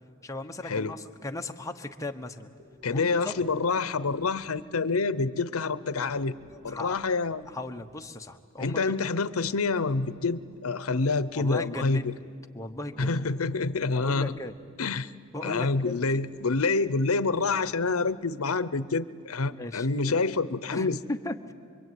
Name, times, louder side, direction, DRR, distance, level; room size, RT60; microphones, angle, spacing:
voice 1, 0.2-2.5 2.9-3.3 6.5-7.0 7.5-8.8 11.4-12.1 12.5-13.2 13.9-14.5 15.3-15.9 19.4-20.2 20.7-21.5, left 2 dB, 15° left, 4 dB, 1.1 m, -37 dB
Breathing, 2.6-5.0 5.8-8.1 9.2-12.1 12.7-14.9 15.8-18.1, left 1 dB, 55° right, 2.1 m, -56 dB
voice 2, 2.8-6.3 6.6-7.4 8.6-12.1 13.0-14.3 14.8-15.1 15.4-21.0, left 3 dB, 70° left, 16 dB, 0.8 m, -27 dB
25.5 x 24.0 x 9.4 m, 2.2 s
head